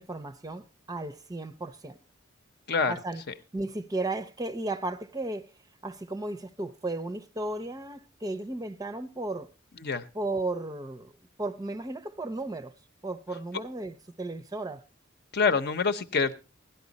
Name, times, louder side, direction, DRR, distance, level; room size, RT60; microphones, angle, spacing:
voice 1, 0.0-2.0 2.9-3.2 3.5-5.5 5.8-9.5 10.1-11.1 11.4-12.7 13.0-14.8, right 2 dB, 20° right, 0.6 m, -34 dB
voice 2, 15.3-16.3, left 5 dB, 55° left, 0.9 m, -25 dB
16.5 x 11.5 x 4.0 m
head